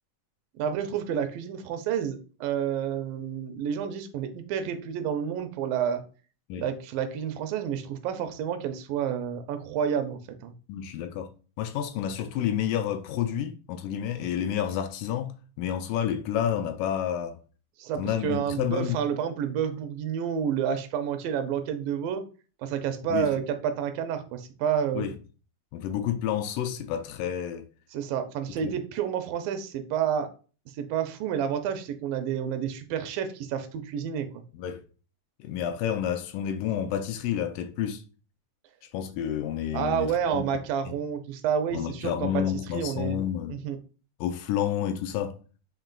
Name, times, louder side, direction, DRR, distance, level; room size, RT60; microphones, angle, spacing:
voice 1, 0.6-6.0 6.6-10.5 17.8-22.2 22.6-25.1 27.9-30.3 30.8-34.4 39.7-42.4 42.7-43.2 43.5-43.8, right 8 dB, 85° right, 2.3 m, -29 dB
voice 2, 10.7-17.4 18.0-19.0 23.1-23.3 24.9-25.1 25.7-27.7 28.6-28.7 34.5-34.8 35.4-38.0 38.9-40.5 41.7-43.6 44.2-45.4, left 10 dB, 80° left, 2.1 m, -30 dB
5.9 x 3.9 x 2.2 m
omnidirectional pair, 4.0 m